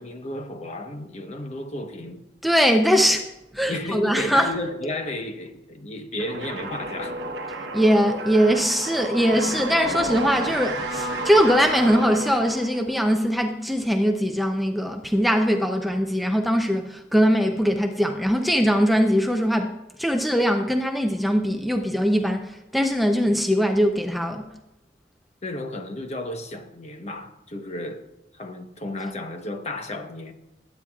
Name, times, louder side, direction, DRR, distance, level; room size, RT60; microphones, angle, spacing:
voice 1, 0.0-2.2 3.7-7.2 25.4-28.1 28.3-30.3, left 1 dB, 40° left, 1.1 m, -33 dB
voice 2, 2.4-4.5 7.7-24.5, equal, ahead, 0.6 m, -21 dB
sound 1, 6.2-12.9, right 2 dB, 70° right, 1.2 m, -31 dB
20.0 x 9.4 x 2.4 m
head